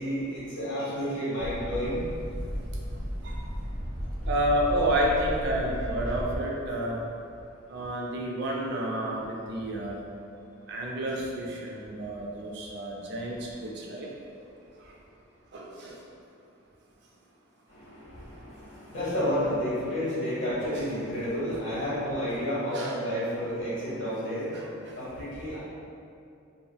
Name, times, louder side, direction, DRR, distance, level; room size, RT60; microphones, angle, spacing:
voice 1, 0.0-2.0 17.7-25.6, equal, 60° left, -10 dB, 1.0 m, -31 dB
sound 1, 1.4-6.4, equal, ahead, 1.2 m, -34 dB
voice 2, 4.2-7.0 7.7-10.1 10.7-14.1 15.5-16.0 20.7-20.9 22.7-23.0 24.5-25.0, right 1 dB, 55° right, -2 dB, 0.4 m, -30 dB
3.3 x 2.0 x 2.3 m, 2.5 s
head